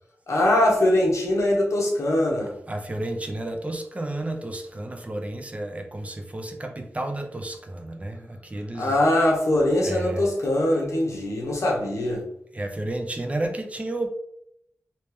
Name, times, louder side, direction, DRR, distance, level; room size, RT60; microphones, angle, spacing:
voice 1, 0.3-2.5 8.7-12.2, left 1 dB, 75° left, -1 dB, 1.0 m, -22 dB
voice 2, 2.7-9.0 9.8-10.3 12.5-14.1, right 1 dB, 25° right, 4 dB, 0.5 m, -31 dB
3.1 x 2.9 x 3.4 m, 0.73 s
wide cardioid pair, 95°, 5 cm